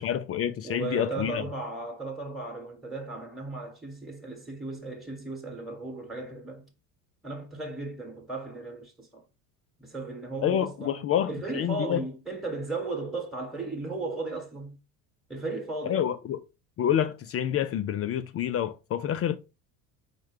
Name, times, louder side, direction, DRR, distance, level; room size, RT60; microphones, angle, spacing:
voice 1, 0.0-1.4 10.4-12.0 15.8-16.4 16.8-19.4, left 10 dB, 35° left, 0.4 m, -28 dB
voice 2, 0.6-6.7 7.2-9.2 9.8-14.8 15.3-16.0, right 3 dB, ahead, 1.2 m, -36 dB
4.6 x 2.2 x 4.8 m
hypercardioid pair, 75°, 46 cm